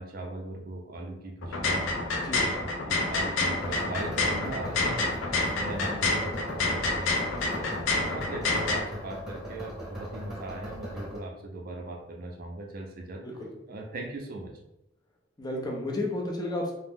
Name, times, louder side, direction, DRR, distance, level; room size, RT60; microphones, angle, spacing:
voice 1, 0.0-7.8 8.0-13.2 13.7-14.5, right 2 dB, 50° right, 2 dB, 0.5 m, -39 dB
sound 1, 1.4-8.8, left 2 dB, 85° left, 0.5 m, -28 dB
sound 2, 3.6-11.2, equal, ahead, 0.8 m, -40 dB
voice 2, 13.2-13.6 15.4-16.7, left 1 dB, 20° left, -1 dB, 0.5 m, -32 dB
2.6 x 2.0 x 3.5 m, 0.85 s
head